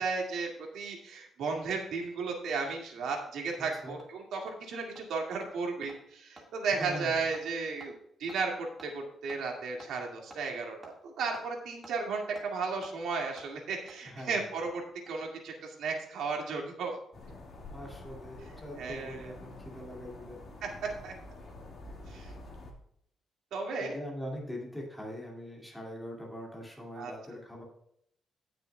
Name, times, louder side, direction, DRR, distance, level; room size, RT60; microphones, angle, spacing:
voice 1, 0.0-7.9 8.2-16.9 18.8-19.3 21.0-21.1 22.1-22.3 23.5-24.0 27.0-27.1, right 4 dB, 75° right, 0 dB, 2.2 m, -34 dB
Hammer, 2.1-2.2 2.6-2.7 3.0-3.1 3.5-3.6 4.0-4.1 4.5-4.6 5.0-5.1 5.4-5.5 5.9-6.0 6.4-6.5 6.8-6.9 7.3-7.5 7.8-7.9 8.3-8.4 8.8-8.9 9.3-9.4 9.8-9.9 10.3-10.4 10.8-10.9 11.3-11.5 11.8-11.9 12.4-12.5 12.8-12.9 13.4-13.5 13.9-14.0 14.9-15.3 15.5-15.6, right 1 dB, 15° right, 2.0 m, -51 dB
voice 2, 6.7-7.3 14.0-14.4 17.7-20.5 23.8-27.6, equal, 5° left, -2 dB, 2.4 m, -42 dB
sound 1, 17.1-22.7, left 2 dB, 40° left, 2.1 m, -47 dB
17.5 x 6.7 x 2.3 m, 0.71 s
cardioid pair, 165°, 0 cm